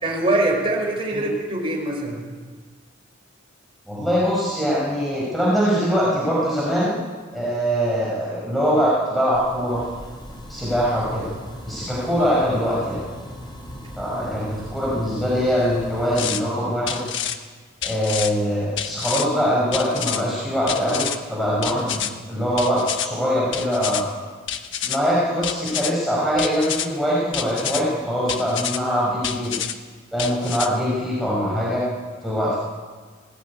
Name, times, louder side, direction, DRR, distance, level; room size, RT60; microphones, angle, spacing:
voice 1, 0.0-2.3 14.3-14.4, right 2 dB, 25° right, -2 dB, 5.5 m, -23 dB
voice 2, 3.9-7.0 7.3-9.8 10.5-11.3 11.7-13.0 14.0-17.0 17.8-24.0 24.8-29.5 30.1-31.8 32.2-32.6, equal, ahead, -7 dB, 5.3 m, -22 dB
sound 1, 9.3-16.2, equal, 20° left, 3.6 m, -38 dB
sound 2, 16.1-16.4 16.9-17.4 17.8-18.3 18.8-19.3 19.7-20.2 20.7-21.2 21.6-22.1 22.6-23.1 23.5-24.0 24.5-25.0 25.4-25.9 26.4-26.9 27.3-27.8 28.3-28.8 29.2-29.7 30.2-30.7, left 9 dB, 60° left, 1.3 m, -28 dB
19.5 x 18.0 x 9.6 m, 1.5 s
head